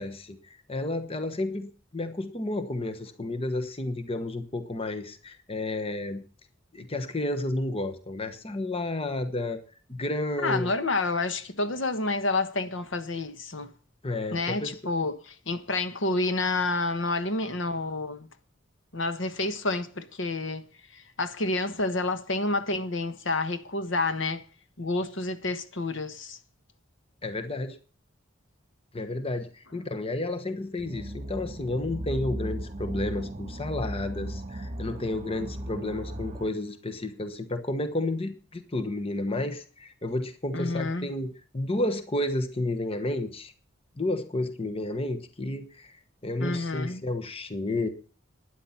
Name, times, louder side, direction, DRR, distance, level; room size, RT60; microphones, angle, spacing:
voice 1, 0.0-6.2 6.7-9.6 9.9-10.8 14.0-14.8 27.2-27.8 28.9-43.5 44.0-47.9, left 2 dB, 30° left, 1.1 m, -31 dB
voice 2, 10.4-13.7 14.3-18.3 18.9-20.6 20.9-24.4 24.8-26.4 40.5-41.1 46.4-47.0, left 2 dB, 70° left, 1.3 m, -29 dB
sound 1, 30.8-36.5, right 1 dB, 30° right, 1.7 m, -36 dB
12.5 x 10.0 x 5.8 m
head